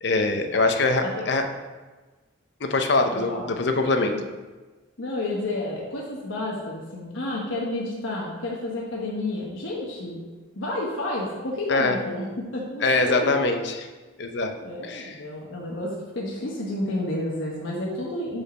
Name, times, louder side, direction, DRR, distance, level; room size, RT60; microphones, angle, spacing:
voice 1, 0.0-1.5 2.6-4.1 11.7-12.0 12.8-13.7 14.2-14.5 14.9-15.2, left 3 dB, 55° left, 5 dB, 0.7 m, -23 dB
voice 2, 3.1-3.4 5.0-10.2 10.5-13.3 14.6-18.4, left 1 dB, 75° left, -3 dB, 1.1 m, -30 dB
5.1 x 4.9 x 6.2 m, 1.3 s
head